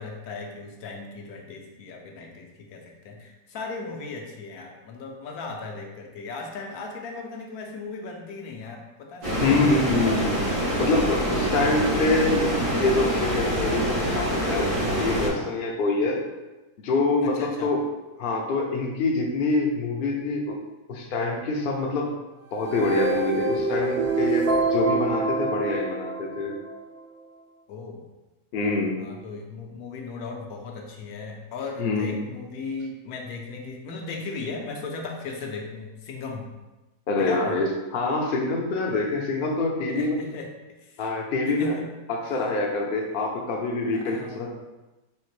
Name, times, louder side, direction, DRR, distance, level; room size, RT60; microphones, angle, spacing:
voice 1, 0.0-9.8 17.2-17.7 27.7-28.0 29.0-36.5 37.2-37.6 39.9-41.0 41.5-41.9 42.2-42.3 43.9-44.4, left 3 dB, 75° left, 1 dB, 1.1 m, -37 dB
sound 1, 9.2-15.3, right 1 dB, 90° right, 2.0 m, -26 dB
voice 2, 9.4-10.3 10.8-16.2 16.8-17.9 18.2-20.6 20.9-22.1 22.5-26.6 28.5-29.0 31.8-32.2 37.1-40.2 41.0-41.7 42.1-44.5, left 3 dB, 60° left, 0 dB, 0.6 m, -25 dB
sound 2, 22.5-26.8, right 3 dB, 65° right, 0.6 m, -26 dB
4.3 x 2.8 x 3.1 m, 1.1 s
omnidirectional pair, 1.6 m